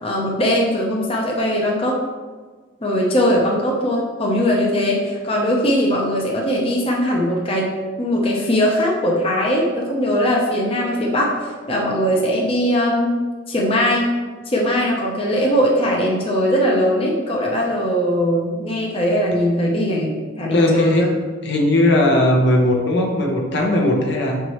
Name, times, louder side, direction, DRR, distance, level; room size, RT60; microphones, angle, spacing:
voice 1, 0.0-2.0 2.8-7.7 8.0-13.1 13.5-14.1 14.5-21.1, equal, 30° left, -2 dB, 0.8 m, -20 dB
voice 2, 20.5-21.1 21.4-24.4, left 1 dB, 55° left, 0 dB, 0.9 m, -18 dB
6.7 x 4.6 x 3.1 m, 1.4 s
head